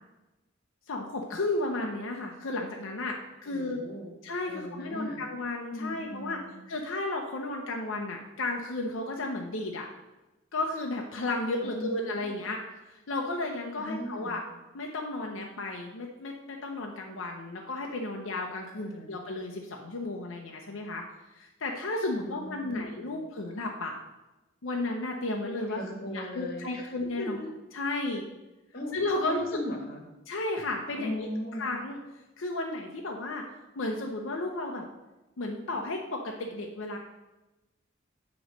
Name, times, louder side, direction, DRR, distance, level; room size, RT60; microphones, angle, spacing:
voice 1, 0.9-3.8 4.2-6.4 6.7-9.9 10.5-12.6 12.9-14.4 14.7-21.0 21.3-23.9 24.6-25.8 26.1-27.4 27.7-28.3 28.9-29.6 30.3-31.3 31.6-32.0 32.4-33.4 33.8-34.8 35.4-37.0, left 2 dB, 80° left, 1 dB, 0.7 m, -33 dB
voice 2, 3.4-4.1 4.5-5.3 5.7-6.6 11.6-12.3 13.8-14.4 18.7-19.1 22.2-23.2 25.7-27.5 28.7-29.0 29.2-30.0 30.9-31.7, left 1 dB, 50° left, 3 dB, 1.3 m, -38 dB
8.0 x 3.1 x 6.3 m, 1.1 s
head